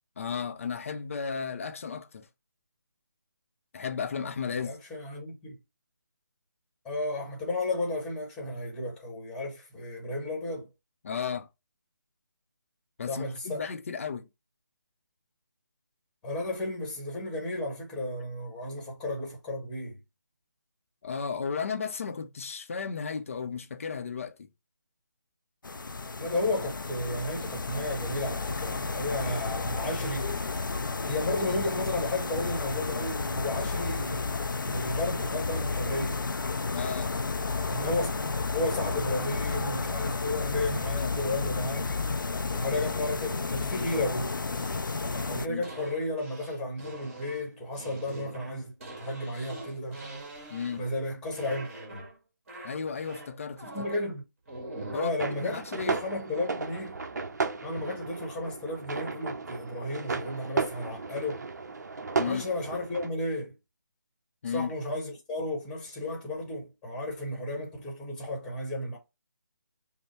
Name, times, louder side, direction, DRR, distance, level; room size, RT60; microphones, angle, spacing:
voice 1, 0.2-2.3 3.7-4.8 11.0-11.5 13.0-14.3 21.0-24.5 36.7-37.1 41.0-41.1 42.7-42.9 45.4-45.7 50.5-50.8 52.6-53.9 54.9-56.0 62.2-62.4 64.4-64.7, left 6 dB, 45° left, 0.6 m, -34 dB
voice 2, 4.6-5.6 6.8-10.7 13.1-13.6 16.2-20.0 26.2-30.3 31.1-34.4 34.6-36.2 37.7-38.1 38.5-41.9 42.5-44.3 45.3-48.7 49.0-50.0 50.8-52.1 53.7-54.2 54.9-55.6 56.0-57.0 57.6-61.4 62.2-63.5 64.5-69.0, left 2 dB, 5° left, 1.1 m, -33 dB
sound 1, 25.6-45.5, left 4 dB, 90° left, 0.5 m, -32 dB
sound 2, 44.5-51.0 51.3-52.2 52.5-54.1 54.5-55.2 56.3-56.5, right 2 dB, 40° right, 1.8 m, -44 dB
sound 3, 55.2-63.1, right 4 dB, 60° right, 0.7 m, -34 dB
5.4 x 2.1 x 4.3 m
figure-of-eight pair, 160°, 11 cm